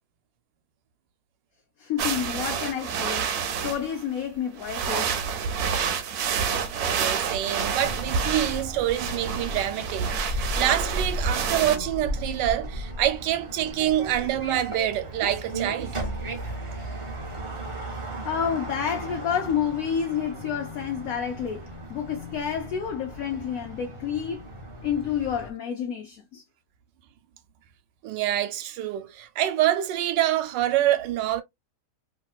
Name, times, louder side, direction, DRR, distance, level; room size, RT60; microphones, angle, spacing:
voice 1, 1.8-3.4 3.6-5.2 18.2-24.5 24.8-26.4, left 8 dB, 65° left, 0.9 m, -29 dB
sound 1, 2.0-4.0 4.6-11.8, right 7 dB, 70° right, 1.0 m, -28 dB
voice 2, 6.7-16.0 28.0-31.4, right 12 dB, 90° right, 1.2 m, -26 dB
sound 2, 7.8-25.5, right 1 dB, 40° right, 0.4 m, -35 dB
3.0 x 2.9 x 2.3 m
omnidirectional pair, 1.9 m